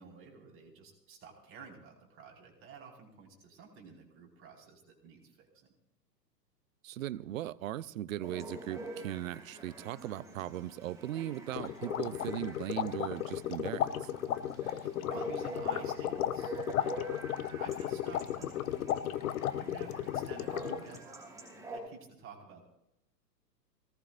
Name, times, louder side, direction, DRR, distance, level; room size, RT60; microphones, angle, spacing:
voice 1, 0.0-5.7 14.5-21.2 21.4-22.6, right 5 dB, 25° right, 4.9 m, -52 dB
voice 2, 6.8-14.1, right 13 dB, 55° right, 0.7 m, -38 dB
Chatter / Bark / Livestock farm animals working animals, 8.2-21.8, right 2 dB, 5° right, 6.3 m, -46 dB
sound 1, 11.5-21.0, left 11 dB, 55° left, 1.0 m, -35 dB
23.5 x 18.5 x 2.6 m
hypercardioid pair, 115°, 50 cm